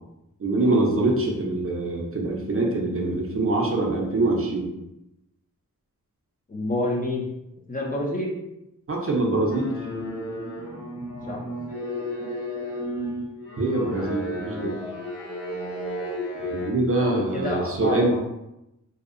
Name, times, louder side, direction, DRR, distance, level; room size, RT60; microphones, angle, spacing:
voice 1, 0.4-4.7 8.9-9.7 13.6-14.7 16.5-18.2, right 2 dB, 40° right, -1 dB, 0.5 m, -24 dB
voice 2, 6.5-7.3 7.7-8.3 11.3-11.4 14.7-14.8 16.6-16.7 17.0-18.2, left 1 dB, 25° left, -3 dB, 0.5 m, -28 dB
sound 1, 9.5-16.7, equal, 45° left, 1.2 m, -33 dB
2.7 x 2.0 x 2.5 m, 0.87 s
wide cardioid pair, 85°, 34 cm